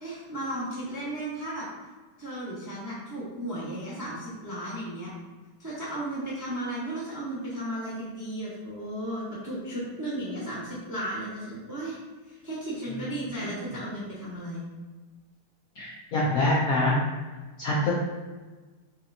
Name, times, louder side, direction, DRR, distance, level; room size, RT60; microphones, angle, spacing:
voice 1, 0.0-1.6 2.2-5.1 5.6-12.0 12.3-14.6, right 1 dB, 20° right, -7 dB, 0.4 m, -34 dB
voice 2, 15.8-16.9 17.6-18.0, left 1 dB, 75° left, -4 dB, 0.8 m, -25 dB
4.3 x 3.3 x 2.6 m, 1.3 s
omnidirectional pair, 2.2 m